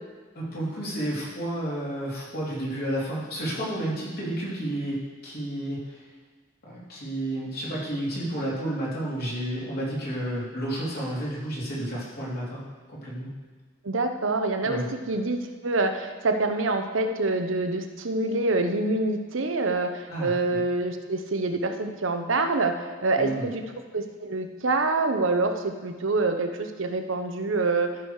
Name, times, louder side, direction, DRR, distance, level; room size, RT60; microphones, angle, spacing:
voice 1, 0.3-6.0 6.6-12.6 12.9-13.3 14.6-14.9 20.1-20.6 23.1-23.5, right 1 dB, 55° left, -6 dB, 3.4 m, -31 dB
voice 2, 13.8-14.8 15.1-23.5 23.9-27.9, right 3 dB, 90° right, 6 dB, 0.9 m, -26 dB
13.5 x 6.3 x 4.8 m, 1.4 s
head